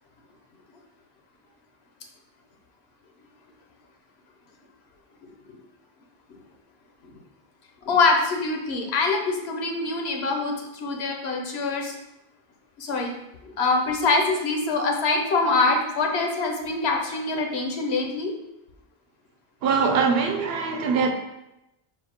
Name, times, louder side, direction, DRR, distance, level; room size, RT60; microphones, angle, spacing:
voice 1, 5.2-5.6 7.0-7.1 7.8-12.0 12.8-13.1 13.4-18.3, left 3 dB, 90° left, 1.0 m, -24 dB
voice 2, 19.6-21.1, right 5 dB, 75° right, 0.8 m, -22 dB
4.4 x 2.1 x 4.2 m
omnidirectional pair, 1.0 m